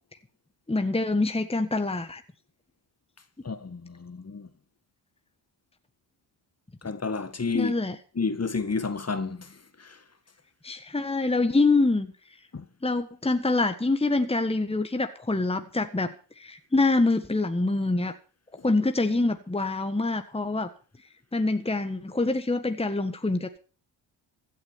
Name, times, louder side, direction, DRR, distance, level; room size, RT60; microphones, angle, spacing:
voice 1, 0.7-2.2 7.5-8.0 10.6-12.1 12.8-18.1 18.6-20.7 21.3-23.6, left 2 dB, 10° left, 1.6 m, -25 dB
voice 2, 3.4-4.5 6.8-7.7 8.2-10.0 12.5-12.6, left 4 dB, 30° left, 1.9 m, -31 dB
16.0 x 9.0 x 7.0 m
supercardioid pair, 50°, 47 cm